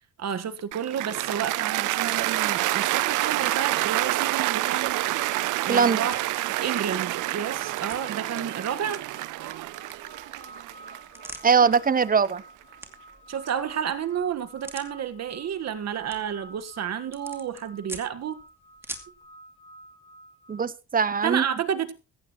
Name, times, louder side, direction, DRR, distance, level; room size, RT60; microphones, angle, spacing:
voice 1, 0.2-5.0 5.6-6.2 6.6-9.0 13.3-18.4 21.2-21.9, right 8 dB, 60° right, 1.5 m, -30 dB
Cheering / Applause, 0.7-12.9, right 17 dB, 85° right, 0.6 m, -28 dB
sound 1, 1.1-19.2, right 1 dB, 10° right, 2.5 m, -49 dB
voice 2, 5.7-6.0 11.4-12.4 20.5-21.4, right 6 dB, 30° right, 0.8 m, -21 dB
sound 2, 9.0-20.6, right 1 dB, 20° left, 5.1 m, -50 dB
15.5 x 14.5 x 3.0 m
cardioid pair, 90°, 30 cm